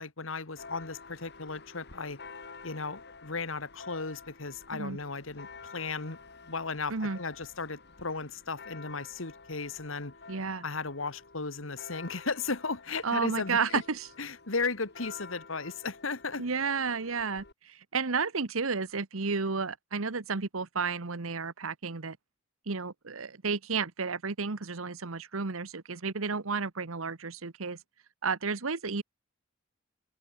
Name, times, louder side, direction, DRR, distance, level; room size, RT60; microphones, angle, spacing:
voice 1, 0.0-2.2 2.6-6.2 6.5-10.1 10.6-13.8 14.2-16.4, left 4 dB, 70° left, 2.0 m, -35 dB
Church bell, 0.6-17.5, left 4 dB, 55° left, 3.6 m, -50 dB
voice 2, 10.3-10.6 13.0-14.1 16.4-22.2 22.7-27.8 28.2-29.0, right 4 dB, 85° right, 1.2 m, -32 dB
open air
head